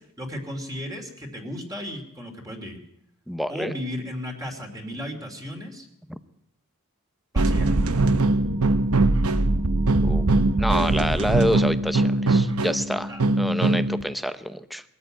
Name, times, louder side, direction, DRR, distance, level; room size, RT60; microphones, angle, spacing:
voice 1, 0.2-2.8 3.5-5.9 7.3-7.7 13.1-13.2, equal, 15° right, 2 dB, 2.9 m, -35 dB
voice 2, 3.3-3.7 6.1-6.2 10.0-10.3 10.6-14.8, equal, ahead, 12 dB, 0.7 m, -27 dB
sound 1, 7.4-14.0, right 2 dB, 80° right, 0.9 m, -21 dB
21.5 x 13.5 x 9.1 m, 0.78 s
head